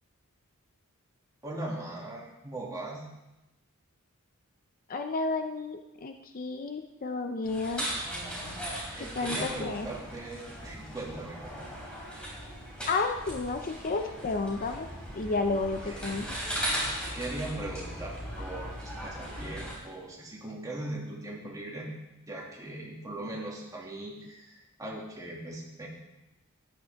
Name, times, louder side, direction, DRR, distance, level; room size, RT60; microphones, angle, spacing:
voice 1, 1.4-3.1 8.9-11.6 15.8-16.2 17.1-21.9 22.3-25.9, right 1 dB, 15° right, -3 dB, 2.3 m, -39 dB
voice 2, 4.9-7.9 9.2-9.9 12.9-16.3, left 3 dB, 40° left, 6 dB, 0.6 m, -31 dB
sound 1, 7.4-19.7, equal, 5° left, 3.6 m, -38 dB
13.0 x 10.5 x 3.6 m, 0.97 s
head